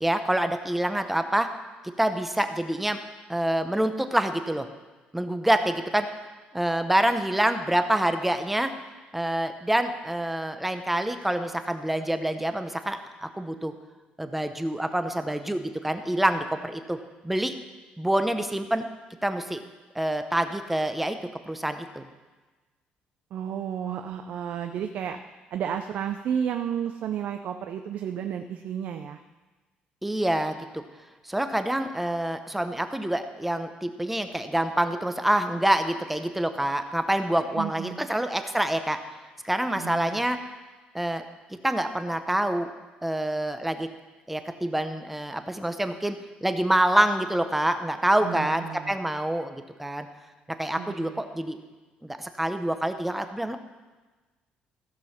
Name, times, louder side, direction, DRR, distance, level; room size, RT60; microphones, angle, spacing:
voice 1, 0.0-1.5 2.0-3.0 3.3-4.7 5.1-6.1 6.5-8.7 9.1-13.7 14.2-17.0 17.2-17.5 18.0-18.9 19.2-19.6 19.9-21.2 21.5-22.1 30.0-30.8 31.2-39.0 39.4-40.4 40.9-41.2 41.6-42.7 43.0-43.9 44.3-46.2 46.4-50.1 50.6-51.6 52.0-53.6, right 1 dB, 5° right, 8 dB, 0.8 m, -26 dB
voice 2, 23.3-25.2 25.5-29.2 37.5-38.0 39.8-40.2 48.2-49.0 50.8-51.2, right 8 dB, 60° right, 7 dB, 0.5 m, -32 dB
15.0 x 6.2 x 5.8 m, 1.2 s
cardioid pair, 135°, 3 cm